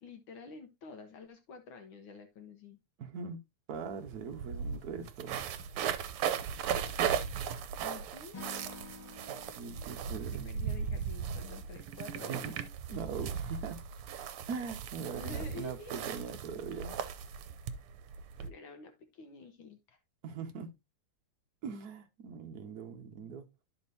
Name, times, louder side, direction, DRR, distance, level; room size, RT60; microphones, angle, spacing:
voice 1, 0.0-2.8 7.8-8.5 10.3-12.5 15.1-16.0 18.4-20.0, left 4 dB, 70° left, 1.5 m, -49 dB
voice 2, 3.0-3.4 3.7-5.4 9.4-10.5 12.2-12.5 12.9-13.8 14.4-17.0 20.2-20.7 21.6-23.5, right 6 dB, 55° right, 1.3 m, -41 dB
sound 1, 3.7-3.8 4.1-18.5, right 7 dB, 80° right, 1.6 m, -37 dB
Acoustic guitar / Strum, 8.3-11.6, left 4 dB, 15° left, 1.2 m, -51 dB
12.0 x 4.3 x 2.7 m
omnidirectional pair, 2.4 m